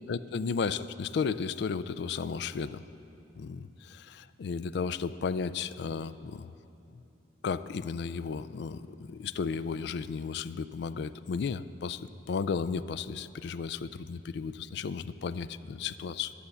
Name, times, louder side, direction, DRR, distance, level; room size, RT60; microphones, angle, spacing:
voice 1, 0.1-2.8 3.4-6.5 6.9-7.0 7.4-16.3, left 5 dB, 65° left, 15 dB, 0.3 m, -34 dB
12.0 x 7.0 x 7.8 m, 2.9 s
head